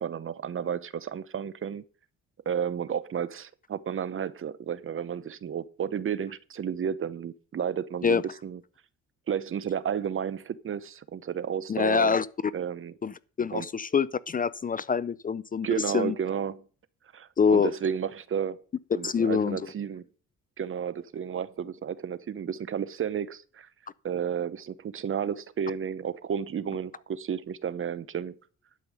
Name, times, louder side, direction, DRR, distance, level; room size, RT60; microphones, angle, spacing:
voice 1, 0.0-1.8 2.5-8.6 9.3-12.2 12.5-12.9 13.5-13.7 15.6-16.6 17.1-18.6 18.9-20.0 20.6-23.7 24.0-28.4, right 8 dB, 45° right, 0.8 m, -32 dB
voice 2, 11.7-12.3 13.0-13.1 13.4-15.7 15.9-16.1 17.4-17.7 19.0-19.6, left 6 dB, 30° left, 0.5 m, -25 dB
12.0 x 5.5 x 7.6 m
cardioid pair, 90°, 30 cm